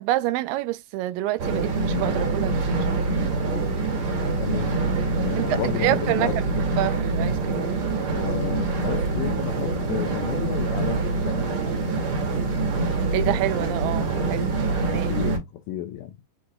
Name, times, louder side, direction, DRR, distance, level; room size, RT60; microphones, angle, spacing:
voice 1, 0.0-2.9 5.4-7.7 13.1-14.5 14.9-15.1, right 15 dB, 85° right, 2.2 m, -27 dB
sound 1, 1.4-15.4, right 3 dB, 50° right, 2.6 m, -25 dB
voice 2, 4.4-4.8 5.1-6.3 6.7-6.8 8.1-11.6 14.9-16.2, left 11 dB, 80° left, 2.1 m, -32 dB
6.0 x 2.9 x 2.2 m
omnidirectional pair, 3.9 m